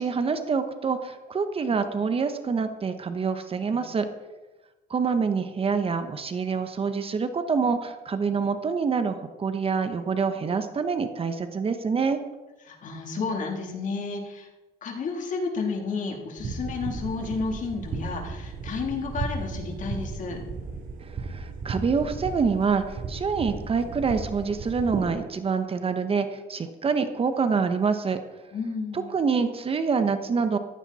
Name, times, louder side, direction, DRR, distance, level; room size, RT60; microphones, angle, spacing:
voice 1, 0.0-4.1 4.9-12.2 21.2-28.2 29.1-30.6, right 5 dB, 35° right, 9 dB, 1.2 m, -26 dB
voice 2, 12.7-14.5 14.8-20.4 28.5-29.1, left 4 dB, 50° left, 1 dB, 3.6 m, -31 dB
sound 1, 16.4-25.1, right 4 dB, 55° right, 3.4 m, -35 dB
15.0 x 14.0 x 4.4 m, 1.1 s
cardioid pair, 110°, 17 cm